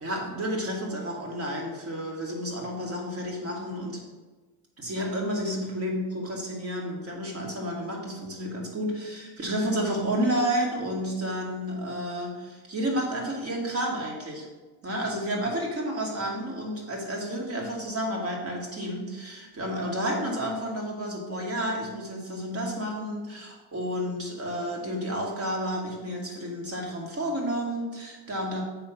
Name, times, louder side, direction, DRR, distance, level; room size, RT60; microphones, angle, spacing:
voice 1, 0.0-4.0 4.8-14.5 14.8-28.6, equal, 30° right, -1 dB, 2.4 m, -31 dB
7.4 x 5.7 x 6.0 m, 1.3 s
cardioid pair, 130°, 47 cm